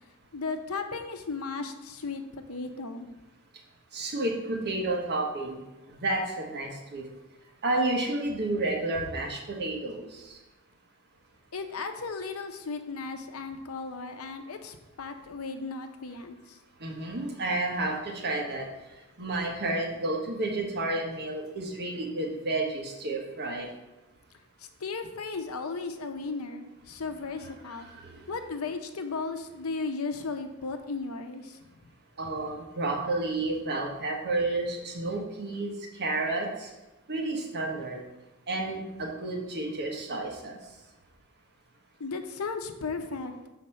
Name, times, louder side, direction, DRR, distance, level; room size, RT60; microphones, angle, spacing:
voice 1, 0.3-3.1 11.5-16.6 24.8-27.9 28.3-31.8 42.0-43.3, left 4 dB, 80° left, 7 dB, 0.7 m, -35 dB
voice 2, 3.9-5.6 5.9-7.0 7.6-10.4 16.8-18.7 19.2-23.7 27.4-27.5 27.8-28.2 32.2-35.7 36.0-36.7 37.1-38.0 38.5-40.6, right 2 dB, 50° right, 0 dB, 1.3 m, -31 dB
6.5 x 4.1 x 5.6 m, 1.1 s
head